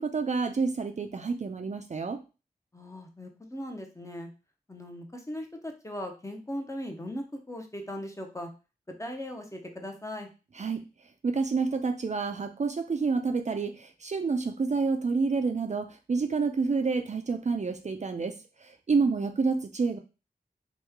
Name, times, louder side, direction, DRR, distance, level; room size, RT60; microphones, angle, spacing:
voice 1, 0.0-2.2 10.6-10.8 11.2-18.4 18.9-20.0, right 4 dB, 50° right, 5 dB, 0.4 m, -28 dB
voice 2, 2.7-4.3 4.7-8.5 9.0-10.3 19.0-19.3, left 1 dB, 20° left, 4 dB, 0.6 m, -39 dB
3.0 x 2.3 x 3.4 m, 0.31 s
wide cardioid pair, 65°, 16 cm